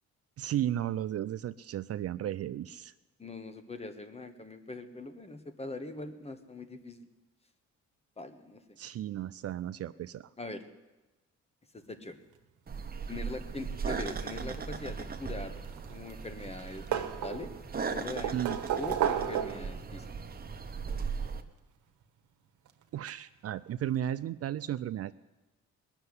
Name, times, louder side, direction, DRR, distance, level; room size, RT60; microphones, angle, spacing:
voice 1, 0.4-2.9 8.8-10.3 18.3-18.6 22.9-25.1, right 11 dB, 55° right, 14 dB, 0.5 m, -34 dB
voice 2, 3.2-7.1 8.2-8.8 10.4-10.6 11.7-12.2 13.1-15.6 15.9-17.5 17.9-20.1, left 2 dB, 20° left, 8 dB, 1.4 m, -42 dB
sound 1, 12.7-21.4, right 5 dB, 30° right, 1.1 m, -38 dB
sound 2, 15.6-16.3 16.5-17.7 18.2-19.8 21.0-21.1 22.7-22.8 23.1-23.2, right 9 dB, 70° right, 1.2 m, -32 dB
20.0 x 6.7 x 9.7 m, 1.1 s
cardioid pair, 90°, 30 cm